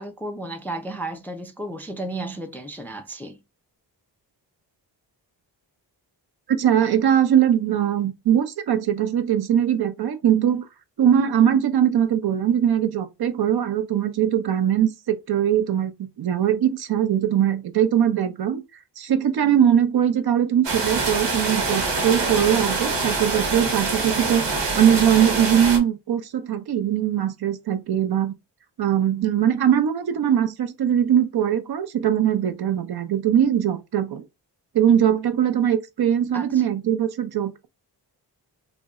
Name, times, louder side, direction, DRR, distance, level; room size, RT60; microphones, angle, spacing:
voice 1, 0.0-3.4 36.3-36.6, right 2 dB, 5° left, 0.3 m, -33 dB
voice 2, 6.5-10.6 11.0-18.6 19.0-28.3 28.8-34.2 34.7-37.7, right 9 dB, 60° right, 0.5 m, -21 dB
sound 1, 20.6-25.8, right 3 dB, 75° right, 1.0 m, -25 dB
2.5 x 2.1 x 3.5 m
cardioid pair, 75°, 44 cm